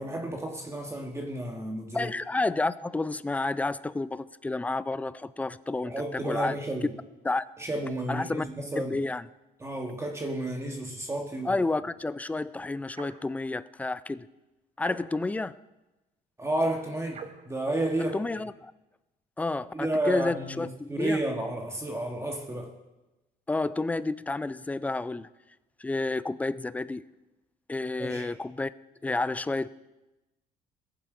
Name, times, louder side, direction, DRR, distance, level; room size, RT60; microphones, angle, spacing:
voice 1, 0.0-2.1 5.8-6.9 7.6-9.0 9.6-11.6 16.4-18.2 19.7-22.7 28.0-28.3, right 1 dB, 15° right, 2 dB, 1.4 m, -31 dB
voice 2, 1.9-6.6 7.2-7.5 8.1-8.5 8.8-9.2 11.4-14.3 14.8-15.6 18.0-18.7 19.4-21.2 23.5-25.3 25.8-27.1 27.7-28.7 29.0-29.7, left 2 dB, 10° left, 16 dB, 0.3 m, -30 dB
sound 1, 12.9-13.3 14.8-15.4 17.1-17.5, right 6 dB, 40° right, 1.0 m, -44 dB
20.0 x 7.4 x 4.8 m, 1.0 s
cardioid pair, 110°, 17 cm